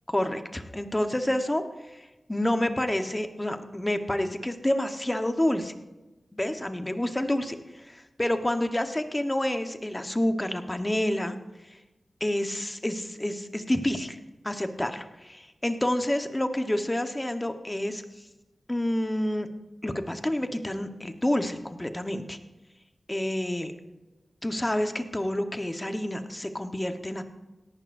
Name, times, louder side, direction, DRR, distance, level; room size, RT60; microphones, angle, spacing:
voice 1, 0.1-1.6 1.9-5.7 6.3-11.4 12.2-14.2 14.4-18.0 18.7-19.5 19.8-22.4 23.1-23.7 24.4-27.2, left 1 dB, 20° left, 7 dB, 1.2 m, -28 dB
17.5 x 11.5 x 2.7 m, 1.1 s
cardioid pair, 45°, 0 cm